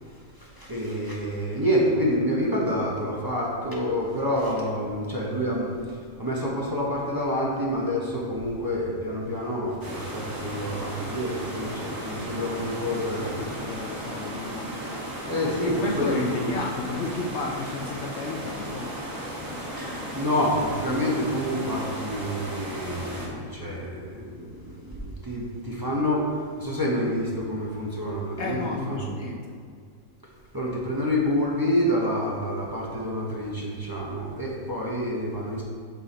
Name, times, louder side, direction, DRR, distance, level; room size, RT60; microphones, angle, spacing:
voice 1, 0.0-13.5 15.3-16.5 19.8-29.1 30.5-35.6, equal, 20° right, -5 dB, 1.0 m, -28 dB
sound 1, 9.8-23.3, equal, 70° right, 1.8 m, -35 dB
voice 2, 12.9-13.2 13.6-14.8 15.6-19.0 28.4-29.5, left 3 dB, 65° left, 0 dB, 0.8 m, -33 dB
6.2 x 5.5 x 4.2 m, 2.2 s
omnidirectional pair, 1.5 m